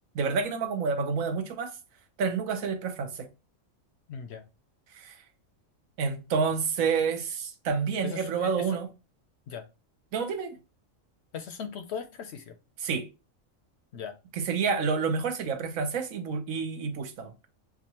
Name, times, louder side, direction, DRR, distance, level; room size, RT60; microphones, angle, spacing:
voice 1, 0.1-1.7 2.2-3.3 4.9-5.2 6.0-8.9 10.1-10.6 12.8-13.1 14.5-17.3, right 5 dB, 80° right, 1.2 m, -29 dB
voice 2, 4.1-4.4 8.0-8.8 9.5-9.7 11.3-12.6 13.9-14.2, left 7 dB, 65° left, 0.7 m, -38 dB
6.8 x 2.4 x 2.8 m
omnidirectional pair, 1.4 m